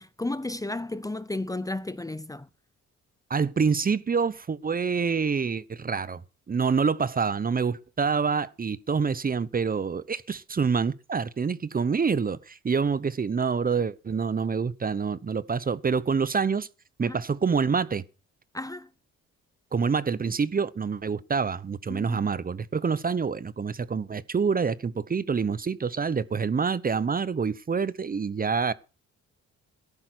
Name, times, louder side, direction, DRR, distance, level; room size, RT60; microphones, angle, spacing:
voice 1, 0.0-2.5 17.0-17.2 18.5-18.9 21.9-22.2, left 2 dB, 10° left, 0.8 m, -33 dB
voice 2, 3.3-6.2 6.5-16.7 17.0-18.0 19.7-28.7, right 5 dB, 30° right, 0.9 m, -26 dB
14.0 x 11.0 x 6.1 m
cardioid pair, 90°, 30 cm